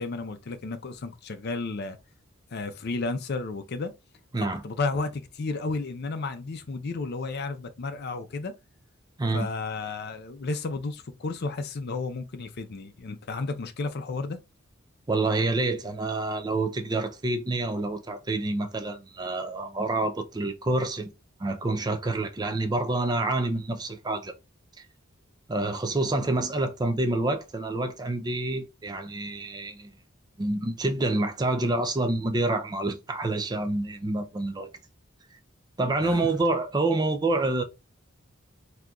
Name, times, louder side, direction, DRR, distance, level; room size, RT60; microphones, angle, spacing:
voice 1, 0.0-2.0 2.5-3.9 4.4-8.5 9.3-14.4 36.0-36.2, left 3 dB, 50° left, 0.5 m, -32 dB
voice 2, 15.1-21.1 21.4-24.3 25.5-29.9 30.4-34.7 35.8-37.6, right 2 dB, 20° right, 0.4 m, -27 dB
3.7 x 2.8 x 2.3 m
head